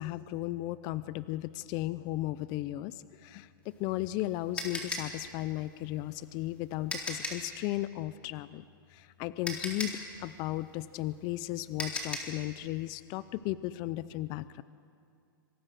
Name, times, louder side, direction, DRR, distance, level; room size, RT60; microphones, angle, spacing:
voice 1, 0.0-8.6 8.9-14.6, left 16 dB, 35° left, 15 dB, 0.6 m, -35 dB
sound 1, 3.7-7.5 8.9-9.0 9.4-12.4, left 2 dB, 10° left, 3.9 m, -38 dB
26.5 x 25.0 x 6.6 m, 2.3 s
hypercardioid pair, 140°, 12 cm